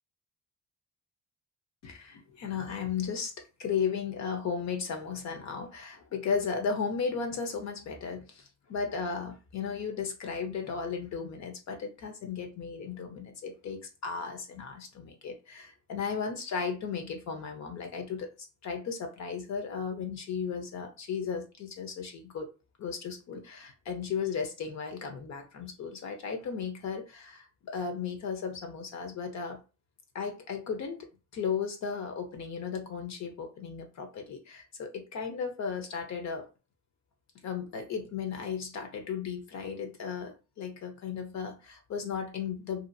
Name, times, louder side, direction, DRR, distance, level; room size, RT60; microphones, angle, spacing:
voice 1, 1.8-3.3 3.6-8.4 8.7-18.3 18.6-22.5 22.8-29.6 30.1-31.0 31.3-36.4 37.4-42.9, left 6 dB, 65° left, 0.9 m, -35 dB
2.9 x 2.5 x 2.6 m
cardioid pair, 90°, 30 cm